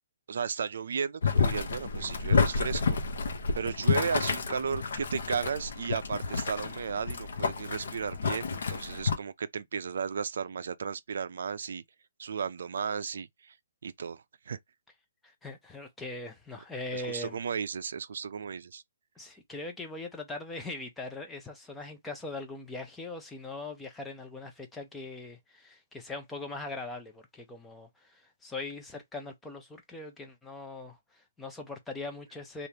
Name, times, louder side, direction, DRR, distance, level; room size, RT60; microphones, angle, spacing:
voice 1, 0.3-3.0 3.5-11.8 12.2-13.5 13.8-14.6 16.9-18.8, right 6 dB, 55° right, 0.4 m, -34 dB
Boiling, 1.2-9.1, left 5 dB, 55° left, 0.8 m, -30 dB
voice 2, 15.2-17.4 19.2-32.7, left 2 dB, 5° left, 0.5 m, -41 dB
3.3 x 2.5 x 2.8 m
hypercardioid pair, 175°, 0 cm